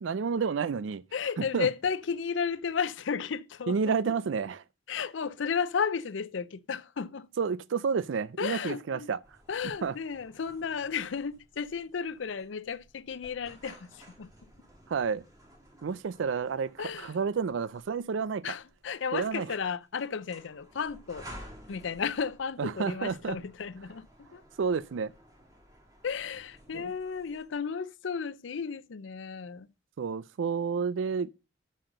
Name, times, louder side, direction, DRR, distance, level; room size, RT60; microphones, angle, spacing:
voice 1, 0.0-1.0 1.5-1.7 3.7-4.6 7.4-9.2 9.8-9.9 14.9-15.2 15.8-18.5 19.1-19.5 22.6-23.4 24.6-25.1 26.7-26.9 30.0-31.3, right 5 dB, 90° right, 0.4 m, -30 dB
voice 2, 1.1-4.1 4.9-7.3 8.4-9.1 9.5-14.3 16.8-17.2 18.4-21.3 21.7-24.4 26.0-29.7, left 6 dB, 85° left, 0.5 m, -33 dB
sound 1, 9.2-27.6, equal, 20° right, 2.1 m, -54 dB
7.7 x 6.4 x 6.5 m
head